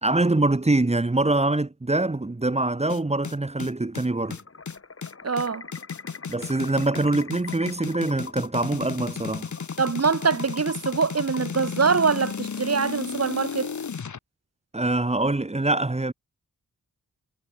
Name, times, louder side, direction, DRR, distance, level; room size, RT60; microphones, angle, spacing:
voice 1, 0.0-4.4 6.3-9.5 14.7-16.1, right 2 dB, 20° right, 2.0 m, -24 dB
sound 1, 2.9-14.2, left 6 dB, 60° left, 2.8 m, -34 dB
sound 2, 4.2-12.7, left 4 dB, 45° left, 6.5 m, -43 dB
voice 2, 5.2-5.7 9.8-13.7, right 5 dB, 50° right, 2.7 m, -24 dB
wide cardioid pair, 145°, 33 cm